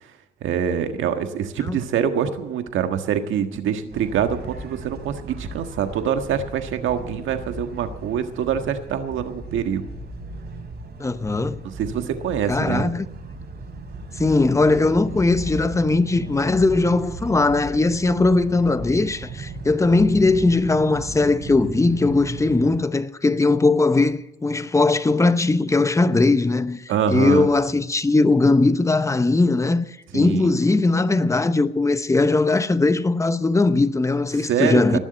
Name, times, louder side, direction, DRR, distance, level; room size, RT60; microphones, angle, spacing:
voice 1, 0.4-9.8 11.6-12.9 26.9-27.5 30.1-30.5 34.5-35.0, right 8 dB, 80° right, 1.6 m, -25 dB
sound 1, 3.9-22.8, right 3 dB, 55° right, 4.0 m, -36 dB
voice 2, 11.0-11.6 12.5-13.1 14.2-29.9 30.1-35.0, left 3 dB, 15° left, 0.8 m, -19 dB
19.5 x 7.3 x 8.9 m
cardioid pair, 90°, 20 cm